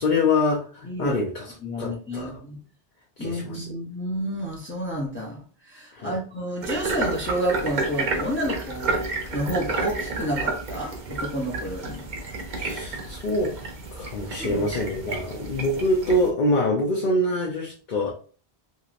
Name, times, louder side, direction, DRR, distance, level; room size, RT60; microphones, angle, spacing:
voice 1, 0.0-1.5 1.8-2.4 3.2-3.6 5.9-6.2 12.6-13.5 13.9-18.1, left 1 dB, 55° left, -3 dB, 0.7 m, -25 dB
voice 2, 0.8-1.2 1.6-2.6 3.2-9.0 9.3-12.1 14.3-14.6, equal, 15° left, -2 dB, 0.6 m, -30 dB
sound 1, 6.6-16.3, right 3 dB, 50° right, 0.7 m, -31 dB
2.9 x 2.9 x 2.5 m, 0.40 s
omnidirectional pair, 1.0 m